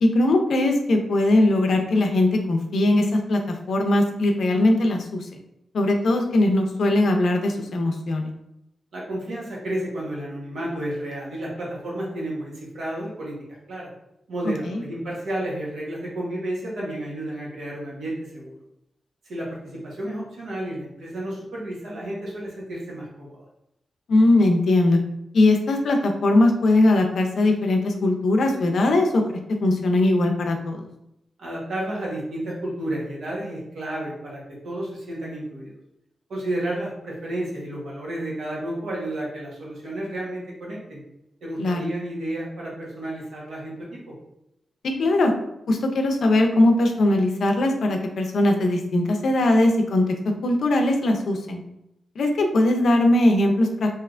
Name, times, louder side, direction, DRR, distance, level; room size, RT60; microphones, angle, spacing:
voice 1, 0.0-3.4 3.7-5.2 5.7-8.3 14.7-14.8 24.1-25.0 25.3-30.9 41.6-41.8 45.0-45.3 45.7-50.0 50.4-51.6 52.2-53.9, left 2 dB, 65° left, 4 dB, 0.4 m, -20 dB
voice 2, 8.9-13.3 13.7-13.9 14.3-18.5 19.2-23.4 31.4-35.7 36.3-41.0 41.4-44.1, right 1 dB, 80° right, -4 dB, 1.0 m, -31 dB
3.2 x 2.8 x 2.4 m, 0.84 s
wide cardioid pair, 175°, 0 cm